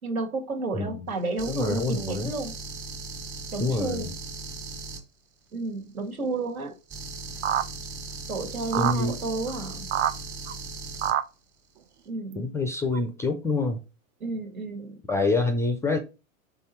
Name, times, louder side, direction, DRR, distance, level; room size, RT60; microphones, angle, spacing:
voice 1, 0.0-2.5 3.5-4.1 5.5-6.7 8.3-9.9 12.1-12.6 14.2-15.0, right 3 dB, 85° right, 2.1 m, -31 dB
voice 2, 0.7-1.1 1.5-2.3 3.6-4.1 8.8-9.2 12.4-13.8 15.1-16.0, left 3 dB, 5° left, 0.4 m, -26 dB
sound 1, 1.4-5.0 6.9-11.1, right 3 dB, 25° right, 1.6 m, -38 dB
sound 2, 7.4-7.7 8.7-9.0 9.5-9.6 9.9-10.1 10.5-10.6 11.0-11.2 12.3-12.4 12.9-13.0, right 11 dB, 55° right, 0.6 m, -25 dB
5.6 x 3.9 x 4.4 m
hypercardioid pair, 110°, 42 cm